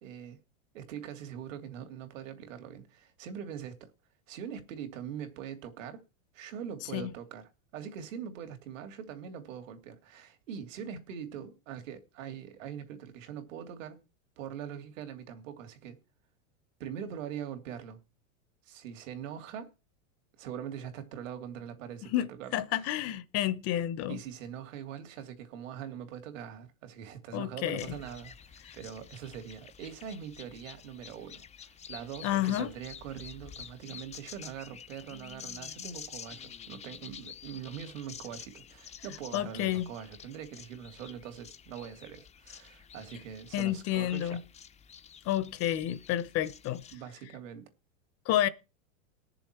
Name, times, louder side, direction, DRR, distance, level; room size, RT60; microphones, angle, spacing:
voice 1, 0.0-0.4 0.7-3.9 4.3-6.0 6.3-14.0 14.4-16.0 16.8-18.0 18.6-19.7 20.4-23.0 24.1-44.4 46.9-47.7, right 8 dB, 65° right, 2.8 m, -43 dB
voice 2, 22.0-24.2 27.3-27.9 32.2-32.7 39.3-39.9 43.5-44.4 45.2-46.8 48.3-48.5, left 13 dB, 35° left, 1.0 m, -30 dB
sound 1, 27.8-47.0, left 8 dB, 15° left, 0.7 m, -49 dB
20.0 x 7.0 x 4.5 m
supercardioid pair, 130°, 41 cm